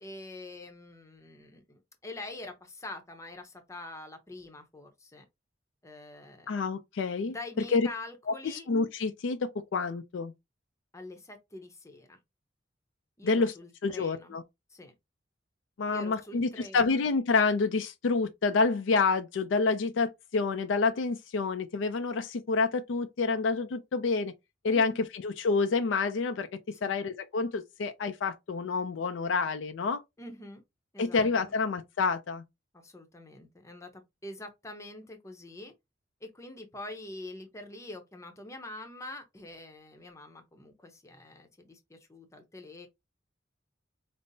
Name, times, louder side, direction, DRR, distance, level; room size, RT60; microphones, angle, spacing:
voice 1, 0.0-5.2 5.8-6.5 7.2-8.7 10.9-12.2 13.2-14.3 14.7-14.9 15.9-16.9 24.7-25.1 26.7-27.0 30.2-30.6 30.9-31.5 32.7-35.7 36.2-42.9, left 2 dB, 15° left, 0.7 m, -45 dB
voice 2, 6.5-7.3 7.7-7.9 8.4-10.3 13.2-13.5 13.8-14.4 15.8-24.3 24.6-26.5 26.8-30.0 31.0-32.4, left 4 dB, 90° left, 0.4 m, -28 dB
5.2 x 2.0 x 2.7 m
head